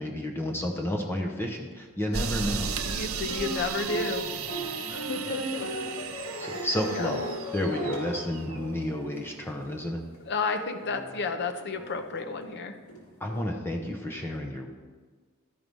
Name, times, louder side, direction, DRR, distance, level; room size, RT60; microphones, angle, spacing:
voice 1, 0.0-2.7 6.4-7.2 7.5-10.0 13.2-14.7, left 1 dB, 10° left, 1 dB, 0.7 m, -31 dB
sound 1, 2.1-8.6, right 6 dB, 65° right, 0.6 m, -35 dB
voice 2, 2.8-4.2 4.9-5.9 7.0-7.1 10.3-12.7, left 4 dB, 50° left, 7 dB, 0.8 m, -32 dB
sound 2, 3.2-9.7 10.1-10.2 10.8-13.4, right 1 dB, 90° left, 2.3 m, -37 dB
12.5 x 4.7 x 5.4 m, 1.4 s
head